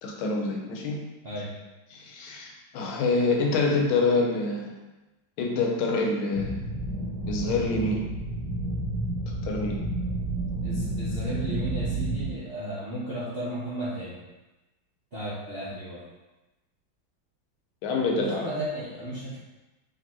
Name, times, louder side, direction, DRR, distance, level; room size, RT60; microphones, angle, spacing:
voice 1, 0.0-1.0 1.9-4.7 5.4-6.7 7.2-8.0 9.4-9.7 17.8-18.4, left 3 dB, 80° left, 0 dB, 1.5 m, -26 dB
voice 2, 1.2-1.5 10.6-14.2 15.1-16.0 18.1-19.4, equal, 60° right, -9 dB, 0.6 m, -34 dB
sound 1, 6.3-12.3, right 2 dB, 75° right, 1.6 m, -31 dB
5.2 x 2.9 x 2.9 m, 1.1 s
omnidirectional pair, 2.3 m